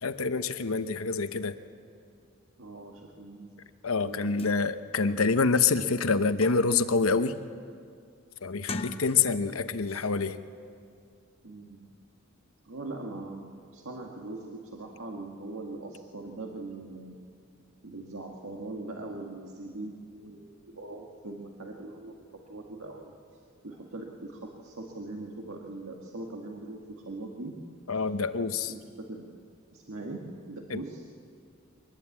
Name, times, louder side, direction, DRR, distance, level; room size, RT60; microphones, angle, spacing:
voice 1, 0.0-1.6 3.8-7.3 8.4-10.4 27.9-28.7 30.7-30.8, left 4 dB, 85° left, 10 dB, 1.0 m, -26 dB
voice 2, 2.6-3.6 4.0-4.4 11.4-11.9 12.7-17.2 17.8-22.2 22.5-23.1 23.6-27.6 28.7-29.3 29.7-31.0, right 2 dB, 80° right, 0 dB, 1.8 m, -41 dB
sound 1, 4.1-4.2 4.4-4.6 5.1-5.2 5.6-6.9 7.3-7.7 8.5-9.5 9.9-10.1, left 3 dB, 30° left, 0.9 m, -40 dB
23.5 x 19.5 x 8.5 m, 2.3 s
head